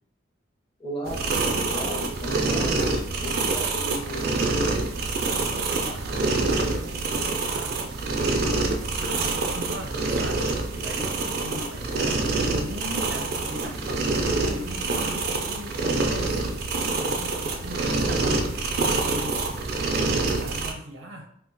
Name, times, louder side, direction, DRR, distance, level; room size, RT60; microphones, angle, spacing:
voice 1, 0.8-2.7 3.2-4.7, equal, 30° left, -2 dB, 0.7 m, -34 dB
sound 1, 1.1-20.7, right 3 dB, 50° right, 0.4 m, -26 dB
voice 2, 5.5-7.9 8.9-14.0 14.5-16.6 17.0-21.3, equal, 80° right, 2 dB, 0.7 m, -40 dB
2.4 x 2.2 x 3.8 m, 0.68 s
head